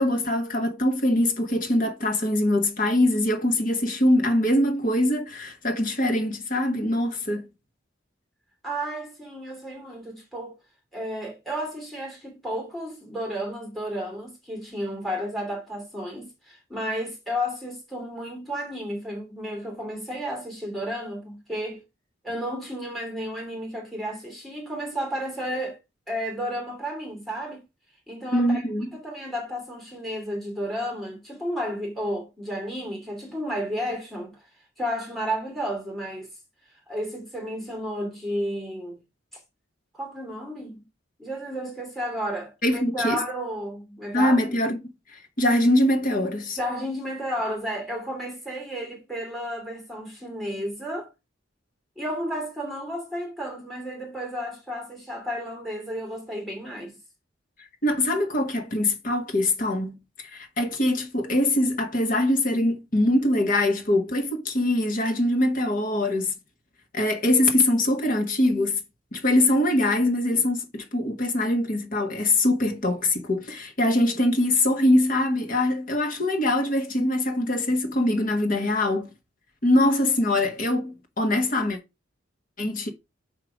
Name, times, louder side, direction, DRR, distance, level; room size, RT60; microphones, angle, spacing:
voice 1, 0.0-7.5 28.3-28.9 42.6-43.2 44.1-44.8 45.1-46.6 57.8-66.3 66.9-68.8 69.1-79.1 79.6-81.8 82.6-82.9, left 1 dB, 45° left, 1.3 m, -23 dB
voice 2, 8.6-10.6 10.9-21.8 22.2-25.8 26.1-27.6 28.1-28.6 28.9-34.4 34.8-36.3 36.9-39.0 39.9-40.9 41.2-44.4 46.6-51.1 52.0-56.9, equal, ahead, 2.6 m, -32 dB
5.6 x 4.9 x 4.9 m
head